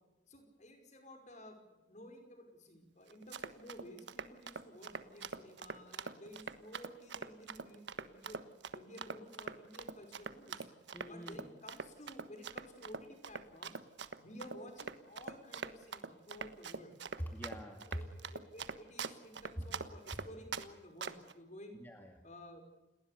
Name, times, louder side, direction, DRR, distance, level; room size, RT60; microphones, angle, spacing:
voice 1, 0.3-8.5 8.7-13.8 14.2-17.0 17.8-21.8 22.2-22.6, equal, 40° left, 5 dB, 5.3 m, -53 dB
Run, 3.1-20.7 21.0-21.3, right 5 dB, 70° right, 1.3 m, -43 dB
voice 2, 10.9-11.5 17.2-18.1 19.5-19.7 21.7-22.2, equal, 10° left, 3 dB, 2.2 m, -44 dB
29.0 x 20.0 x 6.8 m, 1.0 s
head